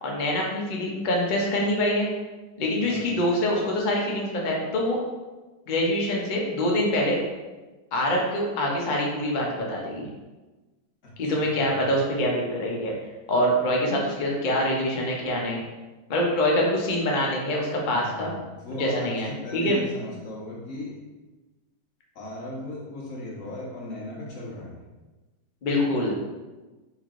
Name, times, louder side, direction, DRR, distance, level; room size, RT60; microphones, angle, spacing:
voice 1, 0.0-2.1 2.6-5.0 5.7-7.2 7.9-10.1 11.2-12.9 13.3-15.6 16.1-18.3 18.8-19.8 25.6-26.2, left 1 dB, 90° left, -2 dB, 0.4 m, -25 dB
voice 2, 2.8-3.1 11.2-11.3 11.6-11.9 17.8-21.0 22.1-24.8, left 1 dB, 50° left, -5 dB, 1.2 m, -37 dB
4.4 x 3.1 x 2.4 m, 1.2 s
omnidirectional pair, 1.8 m